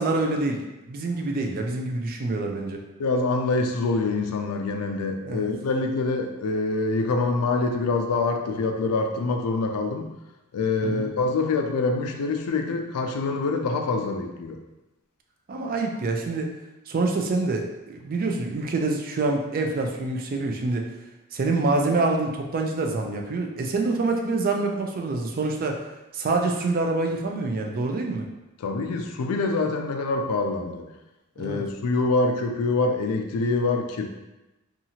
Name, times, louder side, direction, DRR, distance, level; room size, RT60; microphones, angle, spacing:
voice 1, 0.0-2.8 5.3-5.5 10.8-11.1 15.5-16.5 16.9-20.9 21.3-25.8 26.1-28.3 31.4-31.6, right 3 dB, 40° right, 2 dB, 0.3 m, -26 dB
voice 2, 3.0-10.1 10.5-14.6 28.6-30.9 31.4-34.0, left 3 dB, 90° left, 4 dB, 0.4 m, -25 dB
2.8 x 2.4 x 2.7 m, 0.99 s
head